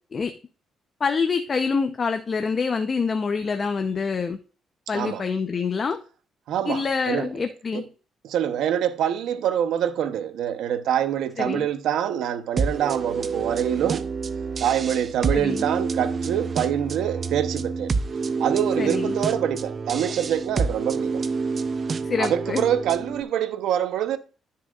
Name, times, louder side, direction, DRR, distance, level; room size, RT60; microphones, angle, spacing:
voice 1, 1.0-4.4 4.9-6.0 6.6-7.8 11.4-11.7 15.3-15.7 18.8-19.2 22.0-22.7, left 5 dB, 40° left, 0.8 m, -26 dB
voice 2, 6.5-7.3 7.7-7.8 8.2-14.1 14.6-17.9 18.4-21.2 22.2-24.2, right 10 dB, 80° right, 0.9 m, -25 dB
sound 1, 12.6-23.2, right 4 dB, 40° right, 0.6 m, -28 dB
13.5 x 5.8 x 2.5 m
cardioid pair, 90°, 0 cm